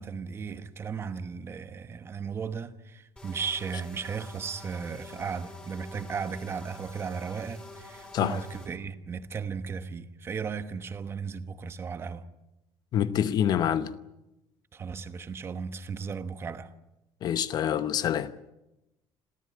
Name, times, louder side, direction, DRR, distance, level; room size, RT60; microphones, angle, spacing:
voice 1, 0.0-12.2 14.7-16.7, right 6 dB, 25° right, 1.1 m, -36 dB
sound 1, 3.2-8.7, left 2 dB, 10° left, 4.4 m, -48 dB
voice 2, 12.9-13.9 17.2-18.3, left 10 dB, 40° left, 0.9 m, -26 dB
26.5 x 15.0 x 9.6 m
cardioid pair, 170°, 10 cm